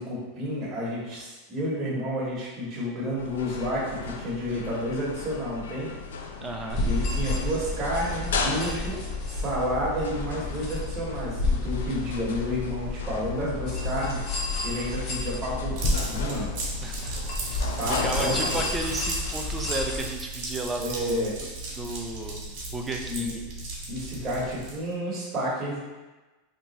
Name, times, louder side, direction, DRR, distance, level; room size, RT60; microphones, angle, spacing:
voice 1, 0.0-5.9 6.8-9.0 9.3-14.2 14.6-16.5 17.8-18.4 20.8-21.3 23.1-23.3 23.9-25.8, equal, 30° right, -6 dB, 1.1 m, -30 dB
sound 1, 3.2-18.7, left 4 dB, 85° left, 0.3 m, -36 dB
voice 2, 6.4-6.8 16.8-21.2 21.8-22.4 22.7-23.4, right 2 dB, 15° right, 2 dB, 0.5 m, -33 dB
sound 2, 6.7-20.0, left 2 dB, 50° left, 0.8 m, -31 dB
sound 3, 15.8-24.9, right 2 dB, 60° right, 1.1 m, -36 dB
2.9 x 2.2 x 4.0 m, 1.2 s
hypercardioid pair, 105°, 0 cm